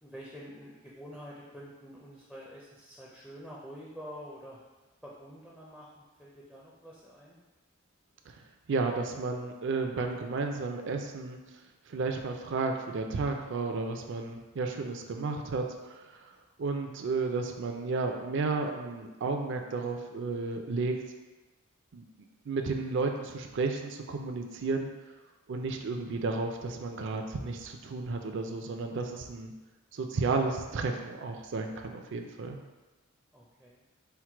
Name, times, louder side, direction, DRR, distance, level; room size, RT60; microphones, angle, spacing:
voice 1, 0.0-4.6 5.0-7.4 33.3-33.8, equal, ahead, -6 dB, 0.4 m, -47 dB
voice 2, 8.7-11.4 11.9-16.3 16.6-21.0 21.9-22.1 22.5-24.9 25.5-29.5 29.9-32.6, right 3 dB, 60° right, 4 dB, 0.4 m, -32 dB
4.5 x 2.1 x 4.4 m, 1.2 s
head